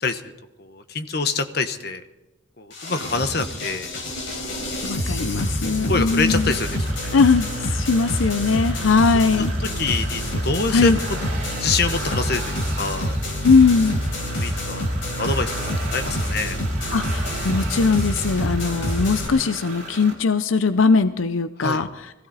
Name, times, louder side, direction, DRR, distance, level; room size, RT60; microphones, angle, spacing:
voice 1, 0.0-0.3 0.6-2.0 2.6-4.0 5.3-7.2 9.1-9.2 9.6-11.2 11.6-13.2 14.4-14.9 15.2-16.6 21.6-21.9, left 4 dB, 50° left, 9 dB, 1.1 m, -26 dB
sound 1, 2.7-19.3, equal, 70° left, 4.5 m, -27 dB
voice 2, 4.8-6.5 7.1-9.5 10.7-11.0 13.4-14.0 16.9-21.9, left 4 dB, 85° left, 12 dB, 0.6 m, -20 dB
sound 2, 6.0-20.1, right 2 dB, 35° right, 3.7 m, -36 dB
22.0 x 16.0 x 4.1 m, 1.0 s
head